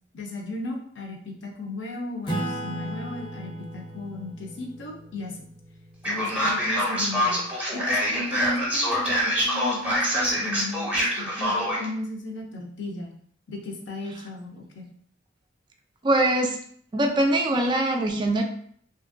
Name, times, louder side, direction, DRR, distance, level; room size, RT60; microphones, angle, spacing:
voice 1, 0.1-5.4 6.0-7.5 7.7-13.1 13.5-14.9, left 2 dB, 65° left, 1 dB, 0.6 m, -35 dB
Acoustic guitar / Strum, 2.3-7.3, right 1 dB, 25° left, 0.6 m, -36 dB
Male speech man speaking, 6.0-11.9, equal, 5° right, 0.8 m, -25 dB
voice 2, 16.0-16.6 16.9-18.4, right 1 dB, 25° right, 3 dB, 0.3 m, -22 dB
2.9 x 2.5 x 2.5 m, 0.62 s
head